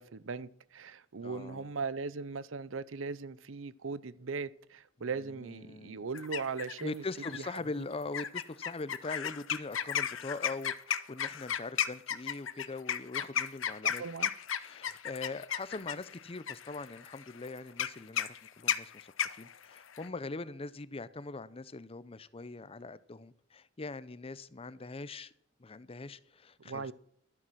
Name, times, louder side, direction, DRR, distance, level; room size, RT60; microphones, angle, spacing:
voice 1, 0.0-7.0 7.3-7.5 13.8-14.3 26.6-26.9, right 4 dB, 90° right, 0.7 m, -39 dB
voice 2, 1.2-1.7 5.0-5.1 5.4-6.0 6.8-14.0 14.6-25.3 25.6-26.9, left 3 dB, 30° left, 0.6 m, -42 dB
sound 1, 6.1-6.8 7.2-7.6 8.1-20.1, left 9 dB, 85° left, 0.8 m, -34 dB
12.5 x 10.0 x 6.3 m
head